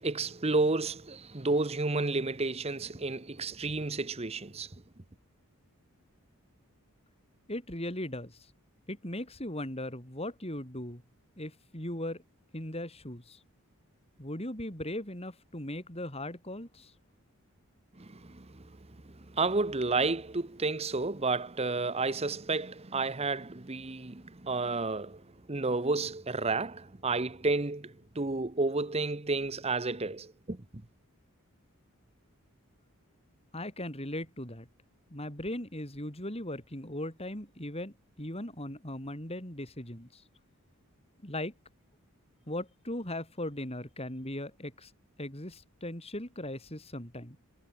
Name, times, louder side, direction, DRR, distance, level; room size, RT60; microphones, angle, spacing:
voice 1, 0.0-4.7 18.0-18.8 19.0-25.2 25.5-30.8, right 3 dB, 25° right, 1.0 m, -31 dB
voice 2, 7.5-8.5 8.9-11.0 11.4-12.2 12.5-13.4 14.2-16.9 33.5-34.7 35.1-40.2 41.2-41.5 42.5-44.9 45.2-47.4, left 1 dB, 25° left, 6.5 m, -38 dB
head